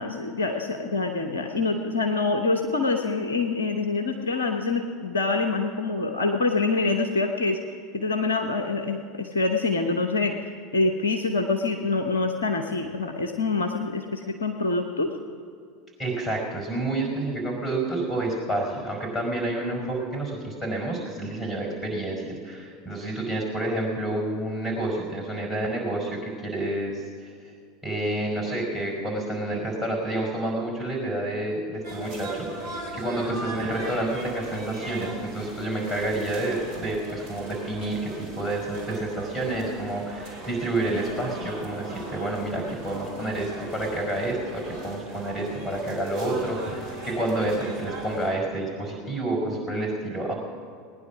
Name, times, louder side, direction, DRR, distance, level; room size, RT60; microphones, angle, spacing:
voice 1, 0.0-7.6 7.9-15.1, left 3 dB, 75° left, 4 dB, 0.9 m, -26 dB
voice 2, 16.0-27.0 27.8-50.3, right 1 dB, 15° left, 1 dB, 4.9 m, -29 dB
sound 1, 31.8-48.3, right 1 dB, 65° right, 3.5 m, -38 dB
19.0 x 10.0 x 6.1 m, 2.2 s
figure-of-eight pair, 75°, 0 cm